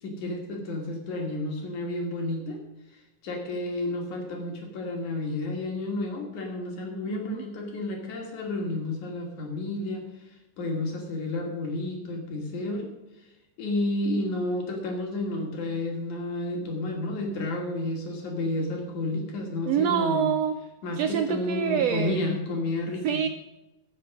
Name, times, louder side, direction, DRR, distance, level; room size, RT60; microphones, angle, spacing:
voice 1, 0.0-2.6 3.2-10.3 10.6-12.9 13.6-20.3 20.8-23.2, left 2 dB, 65° left, 1 dB, 3.9 m, -31 dB
voice 2, 7.1-7.4 19.6-20.6 21.0-22.2 23.0-23.3, right 9 dB, 90° right, 8 dB, 1.4 m, -26 dB
15.5 x 7.5 x 6.2 m, 1.0 s
omnidirectional pair, 3.7 m